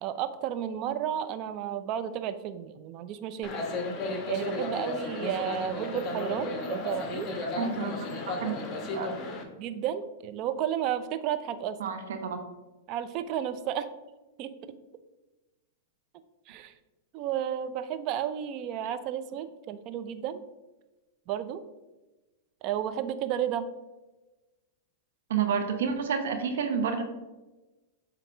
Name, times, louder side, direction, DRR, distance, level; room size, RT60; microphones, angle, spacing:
voice 1, 0.0-3.5 4.3-7.3 9.6-11.8 12.9-13.9 14.4-14.5 16.5-16.7 17.1-20.4 21.3-21.6 22.6-23.6, right 10 dB, 45° right, 11 dB, 0.5 m, -32 dB
sound 1, 3.4-9.4, left 2 dB, 30° left, 1.2 m, -34 dB
voice 2, 7.6-7.9 8.3-8.6 8.9-9.1 11.8-12.4 25.3-27.0, right 6 dB, 75° right, 6 dB, 0.9 m, -29 dB
7.8 x 3.0 x 5.0 m, 1.1 s
hypercardioid pair, 120°, 0 cm